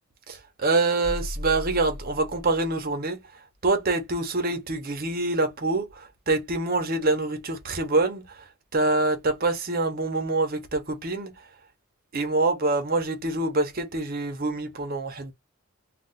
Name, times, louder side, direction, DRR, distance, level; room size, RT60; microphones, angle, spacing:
voice 1, 0.3-11.5 12.1-15.3, right 2 dB, 45° right, 0.8 m, -26 dB
sound 1, 1.0-2.9, left 1 dB, 50° left, 1.0 m, -36 dB
2.4 x 2.3 x 4.0 m
head